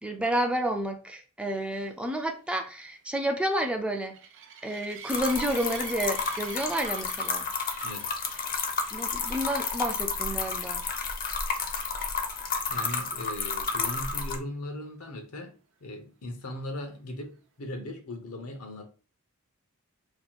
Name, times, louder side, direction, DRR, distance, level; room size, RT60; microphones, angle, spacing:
voice 1, 0.0-4.2 4.6-7.5 8.9-10.8, right 1 dB, 5° right, 0.3 m, -30 dB
sound 1, 1.8-9.7 10.3-10.6 10.9-11.0 11.4-11.5 15.1-15.2, right 7 dB, 60° right, 0.5 m, -46 dB
sound 2, 5.1-14.4, left 5 dB, 40° left, 0.6 m, -31 dB
voice 2, 12.7-15.5 15.8-18.9, left 1 dB, 75° left, 0.8 m, -38 dB
2.9 x 2.2 x 3.9 m
head